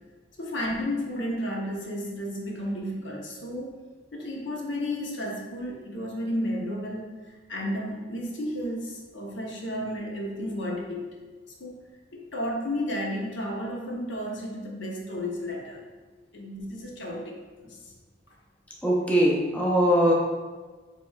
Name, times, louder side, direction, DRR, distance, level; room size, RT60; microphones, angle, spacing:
voice 1, 0.4-3.7 4.1-11.2 11.6-11.7 12.1-15.8 16.3-17.9, equal, 70° left, -1 dB, 0.9 m, -32 dB
voice 2, 18.8-20.1, equal, 5° left, -4 dB, 0.6 m, -21 dB
7.5 x 3.0 x 2.3 m, 1.4 s
head